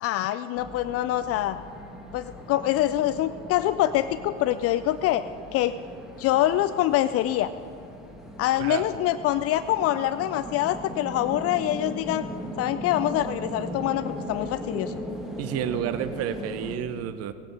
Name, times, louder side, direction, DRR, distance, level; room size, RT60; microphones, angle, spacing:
voice 1, 0.0-1.6 2.1-5.2 5.5-5.8 6.2-7.5 8.4-12.3 12.6-14.9, left 13 dB, 40° left, 13 dB, 0.4 m, -25 dB
sound 1, 0.6-16.8, equal, ahead, 1.8 m, -39 dB
voice 2, 15.4-17.3, right 10 dB, 40° right, 13 dB, 0.7 m, -30 dB
17.0 x 10.5 x 5.4 m, 2.5 s
hypercardioid pair, 95°, 40 cm